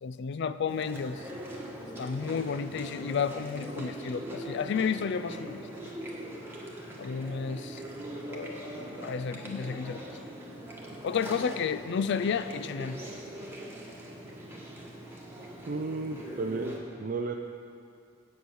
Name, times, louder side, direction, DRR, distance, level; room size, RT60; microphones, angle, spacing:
voice 1, 0.0-1.3 2.0-5.9 7.0-7.8 8.3-10.2 11.0-13.0, left 6 dB, 55° left, 13 dB, 0.4 m, -32 dB
Chewing mastication, 0.7-16.8, right 1 dB, 10° right, 1.3 m, -41 dB
voice 2, 15.7-17.4, right 3 dB, 40° right, 3 dB, 0.4 m, -33 dB
8.5 x 7.9 x 6.3 m, 2.4 s
head